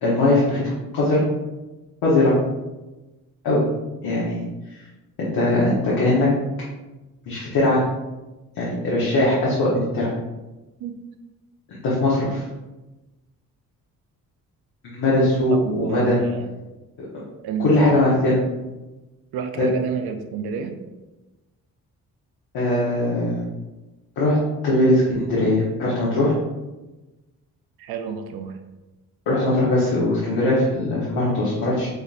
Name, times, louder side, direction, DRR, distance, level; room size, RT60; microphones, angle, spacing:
voice 1, 0.0-1.2 2.0-2.3 3.4-3.6 4.0-4.4 4.7-4.8 5.2-6.3 7.3-7.8 8.6-10.1 11.7-12.4 14.8-16.2 17.6-18.4 19.6-19.7 22.5-23.4 24.2-24.4 24.6-26.3 29.3-31.9, left 1 dB, 70° left, -7 dB, 1.1 m, -20 dB
voice 2, 15.5-16.5 17.4-18.3 19.3-20.8 27.8-28.6, right 7 dB, 80° right, 6 dB, 0.5 m, -30 dB
5.1 x 2.5 x 2.5 m, 1.1 s
supercardioid pair, 60°, 37 cm